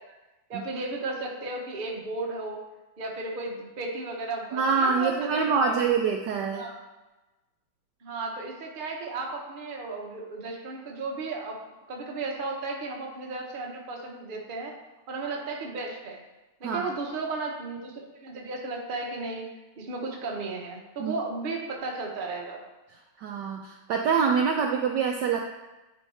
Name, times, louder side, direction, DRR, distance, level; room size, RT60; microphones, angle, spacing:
voice 1, 0.5-2.6 3.0-5.7 6.5-6.7 8.0-11.6 11.9-14.7 15.1-16.2 16.6-19.5 19.8-22.6, right 3 dB, 35° right, -1 dB, 0.8 m, -34 dB
voice 2, 4.5-6.6 16.6-16.9 21.0-21.1 23.2-25.4, right 5 dB, 75° right, 2 dB, 1.0 m, -25 dB
9.8 x 4.5 x 3.3 m, 1.1 s
omnidirectional pair, 2.3 m